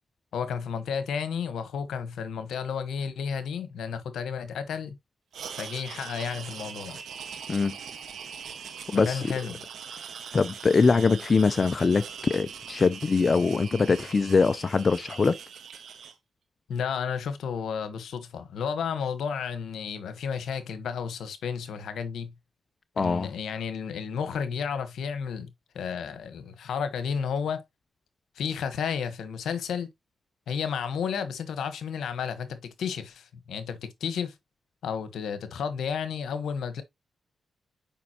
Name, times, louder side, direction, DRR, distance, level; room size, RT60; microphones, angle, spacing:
voice 1, 0.3-5.0 5.6-7.0 9.0-9.6 16.7-22.3 23.0-25.5 25.7-27.6 28.4-29.9 30.5-34.3 34.8-36.8, left 6 dB, 85° left, 1.1 m, -32 dB
sound 1, 5.3-16.1, right 7 dB, 80° right, 1.3 m, -41 dB
voice 2, 8.9-9.3 10.3-15.3 23.0-23.3, left 4 dB, 40° left, 0.5 m, -23 dB
7.1 x 5.3 x 2.9 m
cardioid pair, 75°, 0 cm